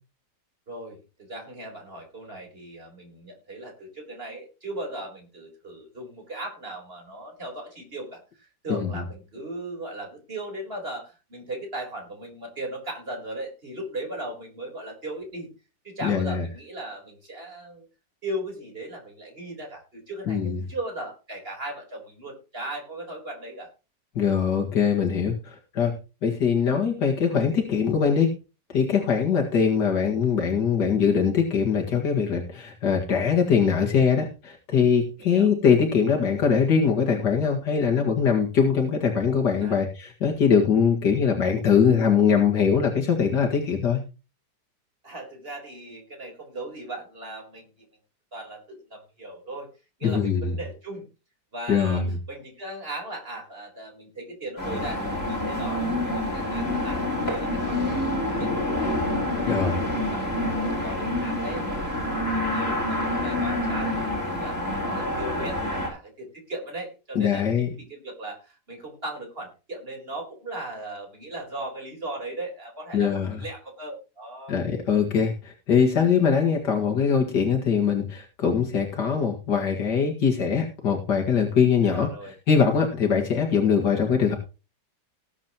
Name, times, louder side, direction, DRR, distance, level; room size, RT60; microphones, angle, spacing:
voice 1, 0.7-15.5 15.8-17.9 18.2-23.7 35.2-35.5 39.6-39.8 45.0-47.9 48.3-49.7 50.0-51.1 51.5-58.1 58.4-58.9 59.2-74.6 81.8-82.3, right 1 dB, 35° right, 1 dB, 4.4 m, -38 dB
voice 2, 16.0-16.4 20.3-20.6 24.2-26.0 26.2-28.3 28.7-44.0 50.0-50.6 51.7-52.1 59.4-59.8 67.2-67.7 72.9-73.4 74.5-84.4, left 6 dB, 80° left, 1 dB, 2.4 m, -22 dB
sound 1, 54.6-65.9, left 1 dB, 35° left, 4.8 m, -27 dB
19.0 x 8.5 x 3.0 m, 0.31 s
omnidirectional pair, 1.8 m